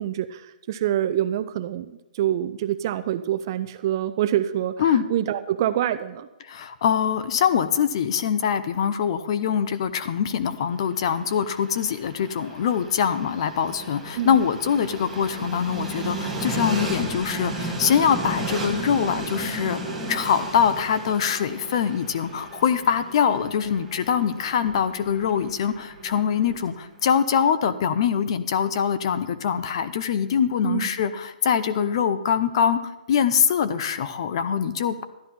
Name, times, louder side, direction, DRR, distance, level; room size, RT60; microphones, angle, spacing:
voice 1, 0.0-6.3 14.2-14.4 30.6-30.9, right 11 dB, 25° right, 11 dB, 0.3 m, -26 dB
voice 2, 6.4-19.8 20.1-35.0, left 7 dB, 35° left, 13 dB, 0.6 m, -23 dB
Train, 10.7-26.8, right 2 dB, ahead, 1.3 m, -34 dB
12.5 x 11.0 x 4.3 m, 0.99 s
hypercardioid pair, 170°, 5 cm